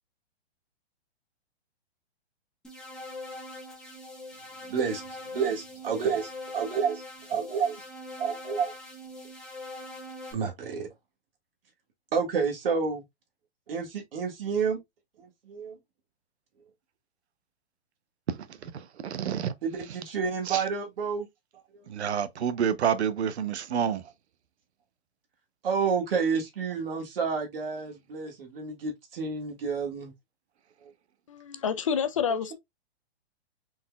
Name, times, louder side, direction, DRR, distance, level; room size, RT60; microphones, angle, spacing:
sound 1, 2.6-10.3, left 1 dB, ahead, 0.9 m, -42 dB
voice 1, 4.7-5.0 5.3-7.0 7.3-7.9 8.2-8.7 10.3-10.9 12.1-13.0 13.7-14.8 15.2-15.8 19.6-21.3 21.5-22.2 25.6-30.1 30.8-30.9 32.3-32.5, right 6 dB, 60° right, 1.7 m, -30 dB
voice 2, 18.3-19.5 20.5-20.6 21.9-24.0, right 8 dB, 90° right, 0.8 m, -29 dB
voice 3, 31.3-32.5, left 7 dB, 30° left, 0.4 m, -28 dB
4.4 x 3.9 x 2.3 m
hypercardioid pair, 165°, 32 cm